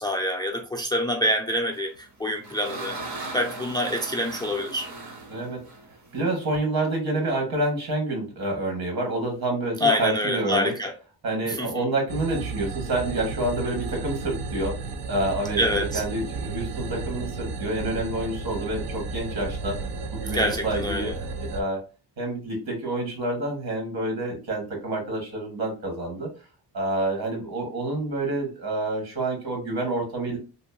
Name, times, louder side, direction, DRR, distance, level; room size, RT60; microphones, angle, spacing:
voice 1, 0.0-4.9 9.8-10.9 11.4-11.9 15.6-16.0 20.3-21.2, equal, 10° left, 0.4 m, -26 dB
sound 1, 2.0-6.6, right 2 dB, 45° right, 0.8 m, -38 dB
voice 2, 5.3-5.7 6.1-10.7 11.2-14.8 15.1-19.8 20.1-21.8 22.2-26.3 26.7-30.4, right 2 dB, 65° right, 1.4 m, -28 dB
sound 2, 12.1-21.6, right 4 dB, 90° right, 0.5 m, -33 dB
2.9 x 2.5 x 2.3 m
cardioid pair, 90°, 41 cm